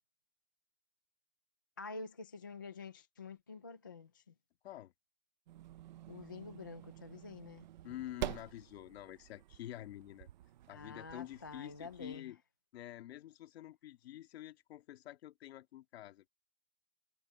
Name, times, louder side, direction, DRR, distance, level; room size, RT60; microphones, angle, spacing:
voice 1, 1.8-4.3 6.1-7.7 10.7-12.3, left 4 dB, 20° left, 0.3 m, -48 dB
sound 1, 5.5-12.2, right 13 dB, 40° right, 0.6 m, -48 dB
voice 2, 7.8-10.3 10.7-12.4 12.7-16.3, left 13 dB, 55° left, 2.1 m, -48 dB
supercardioid pair, 175°, 37 cm